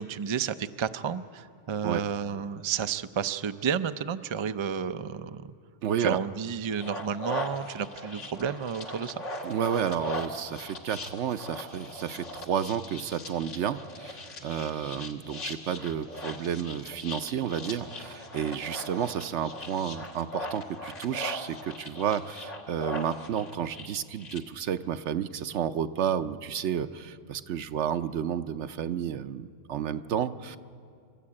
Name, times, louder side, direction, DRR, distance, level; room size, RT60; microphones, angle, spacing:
voice 1, 0.0-5.5 6.0-9.1, right 7 dB, 50° right, 10 dB, 0.3 m, -31 dB
voice 2, 5.8-6.2 9.4-30.6, right 9 dB, 70° right, 11 dB, 1.0 m, -31 dB
sound 1, 6.7-24.4, left 1 dB, 80° left, 2.1 m, -39 dB
27.5 x 13.0 x 8.7 m, 2.4 s
omnidirectional pair, 1.2 m